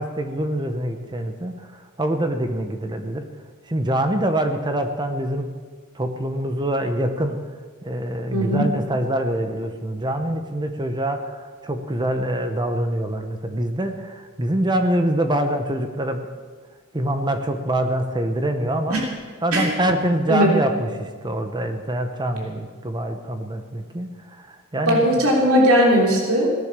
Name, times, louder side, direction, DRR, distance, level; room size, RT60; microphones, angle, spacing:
voice 1, 0.0-3.3 3.7-5.5 5.9-7.4 7.8-16.3 16.9-19.0 19.4-25.3, right 1 dB, 20° right, 6 dB, 1.0 m, -25 dB
voice 2, 8.3-8.7 18.9-19.0 19.5-19.7 20.3-20.5 24.9-26.6, equal, 75° right, -1 dB, 3.3 m, -18 dB
18.5 x 10.5 x 6.7 m, 1.5 s
head